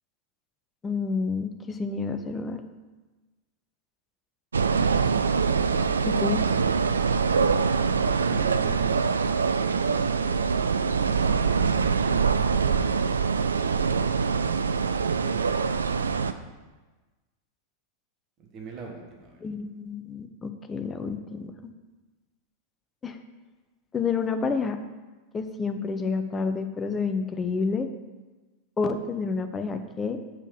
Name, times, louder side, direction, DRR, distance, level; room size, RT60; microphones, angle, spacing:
voice 1, 0.8-2.6 6.0-6.4 19.4-21.7 23.0-23.2 23.9-24.8 25.3-27.9 28.8-30.2, left 4 dB, 20° left, 7 dB, 0.7 m, -29 dB
sound 1, 4.5-16.3, right 5 dB, 75° right, 0.3 m, -24 dB
voice 2, 8.2-9.0 11.7-12.3 15.2-15.6 18.5-19.3, right 4 dB, 35° right, 1 dB, 1.5 m, -41 dB
6.2 x 5.5 x 6.3 m, 1.2 s
figure-of-eight pair, 90°, 0 cm